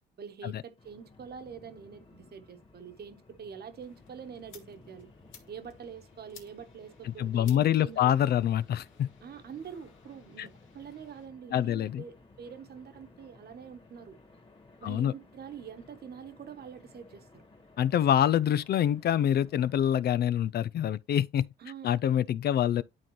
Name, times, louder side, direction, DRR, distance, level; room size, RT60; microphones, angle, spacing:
voice 1, 0.2-5.1 5.5-8.3 9.2-14.2 14.8-17.4 21.6-22.0, right 7 dB, 55° right, 1.2 m, -45 dB
sound 1, 0.8-20.0, left 3 dB, 25° left, 1.8 m, -57 dB
sound 2, 3.8-11.3, left 6 dB, 85° left, 1.8 m, -58 dB
voice 2, 7.1-9.1 10.4-10.5 11.5-12.0 14.8-15.1 17.8-21.5 21.8-22.8, left 10 dB, 55° left, 0.4 m, -26 dB
11.0 x 3.8 x 3.1 m
cardioid pair, 90°, 20 cm